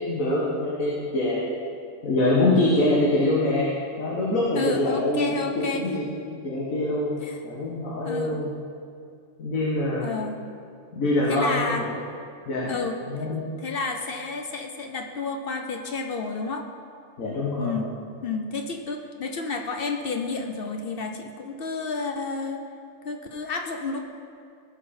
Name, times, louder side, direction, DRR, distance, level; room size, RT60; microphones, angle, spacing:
voice 1, 0.0-1.4 2.0-3.7 4.0-6.1 6.4-7.2 7.4-8.5 9.4-10.1 10.9-11.9 12.5-12.7 13.1-13.4 17.2-17.8, left 2 dB, 90° left, -5 dB, 1.8 m, -24 dB
voice 2, 4.5-5.8 7.2-7.4 8.0-8.5 10.0-10.4 11.3-11.8 12.7-13.0 13.6-16.7 17.6-17.9 18.2-22.6 23.0-24.0, left 4 dB, 55° left, 4 dB, 0.8 m, -30 dB
17.0 x 5.7 x 4.3 m, 2.4 s
omnidirectional pair, 1.4 m